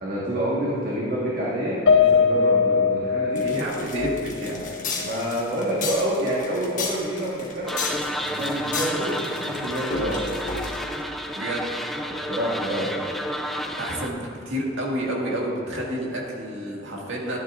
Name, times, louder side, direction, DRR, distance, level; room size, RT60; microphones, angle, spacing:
voice 1, 0.0-3.4 5.0-10.4 12.1-13.2, right 1 dB, 50° right, -6 dB, 1.5 m, -28 dB
Piano, 1.9-6.3 6.7-6.9 7.3-7.4, left 6 dB, 70° left, 0.5 m, -23 dB
sound 1, 3.3-11.0, left 4 dB, 45° left, 1.5 m, -33 dB
voice 2, 3.4-4.6 11.4-11.7 13.7-17.4, right 1 dB, 80° right, -3 dB, 1.9 m, -29 dB
sound 2, 7.7-14.1, equal, ahead, 0.5 m, -31 dB
12.0 x 10.5 x 2.5 m, 2.9 s
head